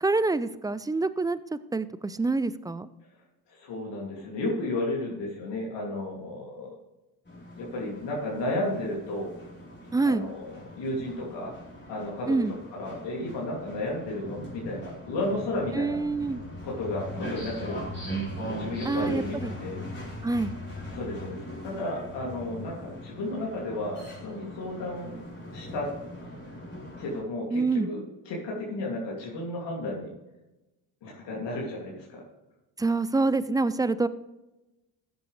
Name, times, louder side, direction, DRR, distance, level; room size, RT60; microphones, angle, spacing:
voice 1, 0.0-2.9 9.9-10.2 12.3-12.5 15.7-16.4 18.9-19.5 20.2-20.5 27.5-27.9 32.8-34.1, right 3 dB, 10° right, 15 dB, 0.3 m, -26 dB
voice 2, 3.5-6.7 7.5-9.3 10.0-11.5 11.9-12.4 12.7-16.0 16.6-17.8 18.4-19.8 20.9-25.1 25.5-25.9 27.0-30.1 31.0-32.2, left 1 dB, 60° left, -3 dB, 2.8 m, -33 dB
sound 1, 7.3-27.2, equal, 25° left, 4.0 m, -40 dB
14.0 x 7.9 x 3.3 m, 1.0 s
supercardioid pair, 70°, 47 cm